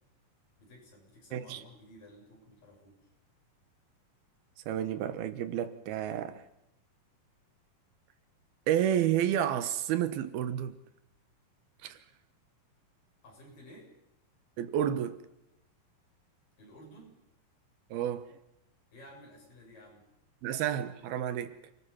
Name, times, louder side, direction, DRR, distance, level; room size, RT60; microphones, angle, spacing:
voice 1, 0.6-3.1 13.2-13.9 16.6-17.2 18.9-20.1, equal, 65° left, 9.0 m, -54 dB
voice 2, 1.3-1.6 4.7-6.4 8.7-10.8 11.8-12.0 14.6-15.2 17.9-18.4 20.4-21.6, right 10 dB, 90° right, 3.1 m, -30 dB
28.5 x 20.0 x 5.8 m
omnidirectional pair, 4.3 m